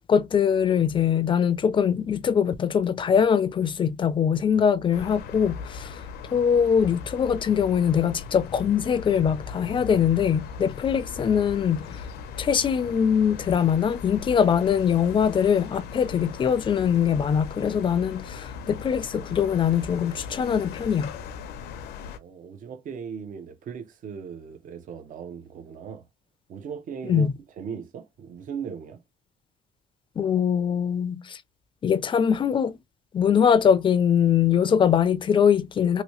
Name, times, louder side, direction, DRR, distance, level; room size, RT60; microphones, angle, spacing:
voice 1, 0.1-6.0 6.3-12.0 12.4-21.2 27.0-27.3 30.2-31.4 31.8-32.8 33.1-36.0, left 7 dB, 30° left, 0.4 m, -22 dB
sound 1, 4.9-22.2, left 6 dB, 75° left, 0.6 m, -39 dB
voice 2, 22.0-26.0 26.5-27.3 27.6-29.0, right 7 dB, 50° right, 0.7 m, -38 dB
2.9 x 2.7 x 3.0 m
cardioid pair, 110°, 17 cm